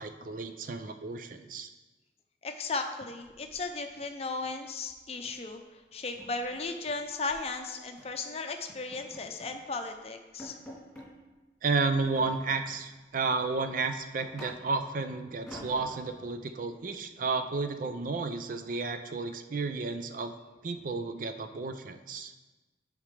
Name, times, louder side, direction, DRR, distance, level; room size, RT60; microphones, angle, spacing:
voice 1, 0.0-1.7 11.6-20.3 20.6-22.3, right 4 dB, 50° right, 8 dB, 0.4 m, -32 dB
voice 2, 2.4-5.6 5.9-10.5, left 3 dB, 35° left, 5 dB, 0.6 m, -36 dB
sound 1, 3.2-4.0 4.3-4.6 4.9-5.1 5.4-5.5 5.9-7.4 8.0-8.2 8.7-9.6 10.0-10.1 10.4-11.1 12.1-12.9 13.3-14.9 15.5-16.2, equal, 5° left, 2.8 m, -48 dB
10.5 x 5.0 x 3.3 m, 1.2 s
head